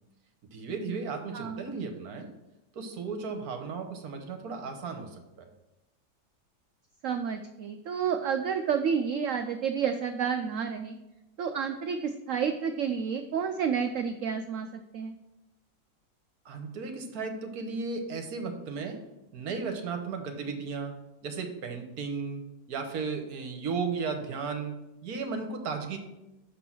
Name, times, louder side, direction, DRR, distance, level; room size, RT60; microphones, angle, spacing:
voice 1, 0.5-2.3 2.7-5.5 16.4-19.1 19.3-26.0, right 4 dB, 60° right, 5 dB, 1.4 m, -35 dB
voice 2, 7.0-11.0 11.4-14.7 14.9-15.2, right 7 dB, 85° right, 7 dB, 0.7 m, -30 dB
6.1 x 6.1 x 5.9 m, 0.94 s
omnidirectional pair, 1.9 m